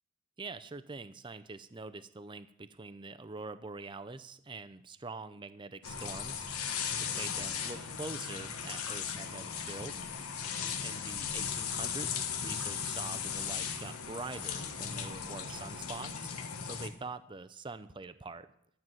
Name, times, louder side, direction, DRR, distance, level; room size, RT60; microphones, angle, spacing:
voice 1, 0.4-6.4 7.0-9.9 10.8-16.3 16.6-18.5, right 3 dB, 20° right, 11 dB, 0.5 m, -44 dB
sound 1, 5.8-16.9, left 7 dB, 85° left, 1.3 m, -37 dB
12.0 x 7.3 x 7.7 m, 0.72 s
head